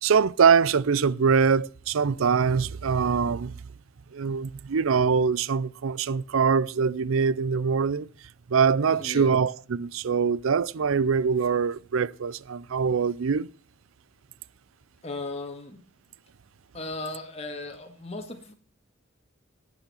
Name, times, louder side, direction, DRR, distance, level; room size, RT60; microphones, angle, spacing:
voice 1, 0.0-3.6 4.1-8.1 8.5-13.5, right 6 dB, 85° right, 0.5 m, -23 dB
voice 2, 9.0-9.3 15.0-15.8 16.7-18.5, left 2 dB, 30° left, 1.8 m, -36 dB
11.5 x 8.5 x 7.0 m
head